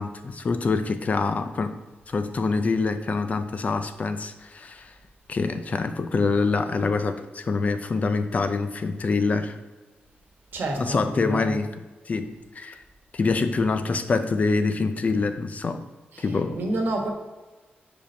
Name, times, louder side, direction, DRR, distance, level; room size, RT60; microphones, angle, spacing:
voice 1, 0.0-1.7 2.1-4.9 5.3-9.6 10.8-11.7 12.1-12.8 13.1-15.8 16.2-16.6, left 4 dB, 40° left, 9 dB, 0.5 m, -25 dB
voice 2, 10.5-11.6 16.1-17.1, right 2 dB, 70° right, 1 dB, 1.2 m, -29 dB
5.2 x 5.1 x 4.4 m, 1.2 s
wide cardioid pair, 120°, 4 cm